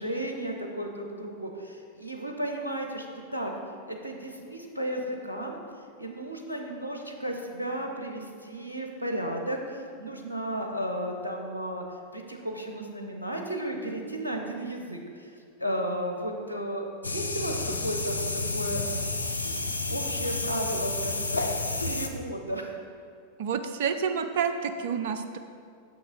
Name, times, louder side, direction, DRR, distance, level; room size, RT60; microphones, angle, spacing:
voice 1, 0.0-3.5 3.9-5.6 6.0-11.8 12.1-15.3 15.6-18.8 19.9-21.4 21.8-22.7, right 1 dB, 85° right, 3 dB, 0.7 m, -34 dB
sound 1, 17.0-22.1, left 3 dB, 80° left, 0.4 m, -30 dB
voice 2, 23.4-25.4, right 6 dB, 55° right, 8 dB, 0.5 m, -29 dB
6.9 x 6.3 x 3.9 m, 2.3 s
figure-of-eight pair, 90°, 0 cm